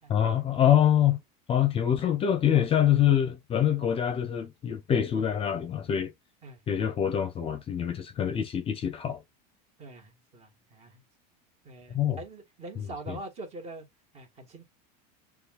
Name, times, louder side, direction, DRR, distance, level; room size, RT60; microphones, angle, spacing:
voice 1, 0.1-1.2 1.5-6.1 6.7-9.2 11.9-12.2 12.8-13.2, left 10 dB, 25° left, 0.7 m, -25 dB
voice 2, 6.4-6.8 9.8-11.0 11.6-13.9 14.1-14.6, right 2 dB, 30° right, 1.6 m, -44 dB
6.6 x 2.4 x 2.4 m
supercardioid pair, 135°, 21 cm